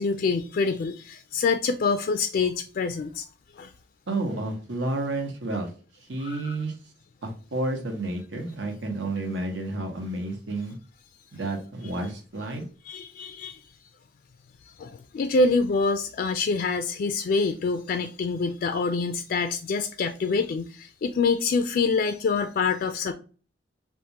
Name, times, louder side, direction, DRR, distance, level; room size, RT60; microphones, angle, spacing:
voice 1, 0.0-3.3 3.5-3.7 6.2-6.5 12.9-13.6 14.8-23.1, left 4 dB, 55° left, 0.3 m, -26 dB
voice 2, 4.1-5.7 6.1-6.7 7.2-10.8 11.3-12.6, right 2 dB, 85° right, 1.0 m, -30 dB
3.6 x 2.4 x 2.8 m
head